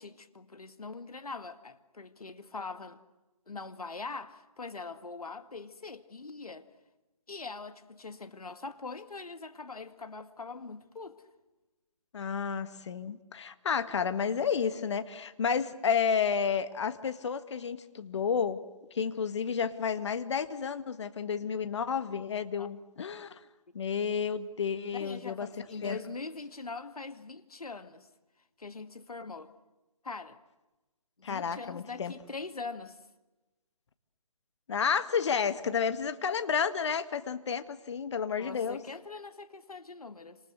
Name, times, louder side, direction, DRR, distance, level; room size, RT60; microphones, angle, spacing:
voice 1, 0.0-3.0 3.5-6.7 7.3-11.2 22.6-22.7 24.9-28.1 28.6-29.5 30.0-30.4 31.2-33.0 38.4-40.4, left 4 dB, 75° left, 2.1 m, -42 dB
voice 2, 12.1-18.6 18.9-23.4 23.7-25.5 25.8-26.0 31.2-32.1 34.7-38.8, left 6 dB, 50° left, 1.8 m, -31 dB
28.5 x 26.5 x 7.8 m
figure-of-eight pair, 145°, 19 cm